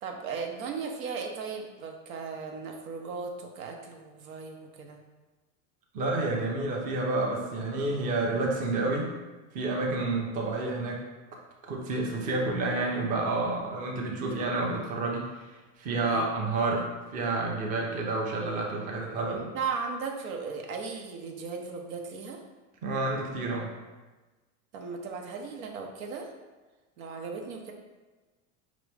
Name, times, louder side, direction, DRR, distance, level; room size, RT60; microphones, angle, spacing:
voice 1, 0.0-5.0 16.0-16.3 19.2-22.4 24.7-26.3 27.0-27.7, right 5 dB, 90° right, 3 dB, 0.9 m, -36 dB
voice 2, 5.9-9.1 9.5-11.0 11.6-15.3 15.8-16.9 17.1-19.4 22.8-23.7, right 2 dB, 20° right, -1 dB, 0.5 m, -29 dB
5.1 x 3.0 x 3.4 m, 1.2 s
supercardioid pair, 150°, 41 cm